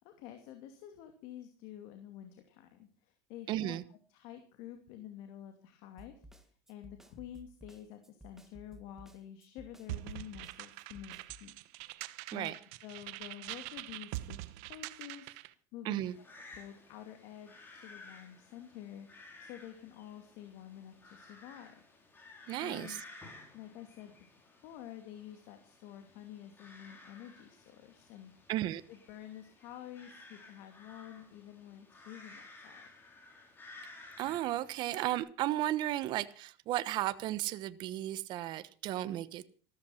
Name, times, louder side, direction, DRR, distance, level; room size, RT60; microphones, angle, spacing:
voice 1, 0.0-3.8 4.1-11.5 11.8-16.0 16.5-21.8 22.6-23.0 23.5-24.3 24.6-28.3 28.9-32.9, left 11 dB, 70° left, 7 dB, 2.6 m, -49 dB
voice 2, 3.5-3.8 12.3-12.5 15.8-16.1 22.5-23.0 28.5-28.8 34.2-39.5, right 14 dB, 55° right, 14 dB, 1.1 m, -34 dB
Snare drum, 6.0-11.5, equal, 5° right, 1.8 m, -56 dB
sound 1, 9.9-15.5, right 18 dB, 75° right, 1.0 m, -44 dB
sound 2, 16.0-35.2, left 3 dB, 20° left, 5.2 m, -55 dB
14.5 x 13.5 x 5.8 m, 0.40 s
supercardioid pair, 125°, 9 cm